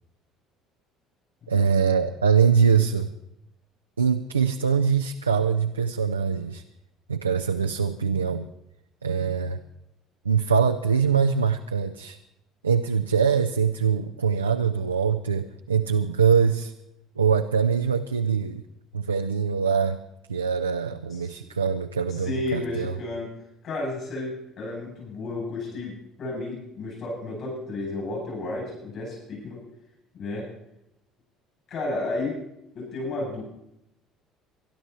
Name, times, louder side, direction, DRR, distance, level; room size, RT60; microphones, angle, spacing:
voice 1, 1.5-3.1 4.0-6.6 7.1-8.5 9.0-9.6 10.2-12.2 12.6-16.7 17.2-18.6 18.9-20.0 20.3-22.9, right 6 dB, 85° right, 6 dB, 0.5 m, -23 dB
voice 2, 22.1-23.3 23.6-29.6 30.1-30.5 31.7-32.4 32.7-33.4, left 2 dB, 50° left, -2 dB, 8.0 m, -32 dB
24.5 x 11.5 x 4.3 m, 0.84 s
figure-of-eight pair, 55°, 0 cm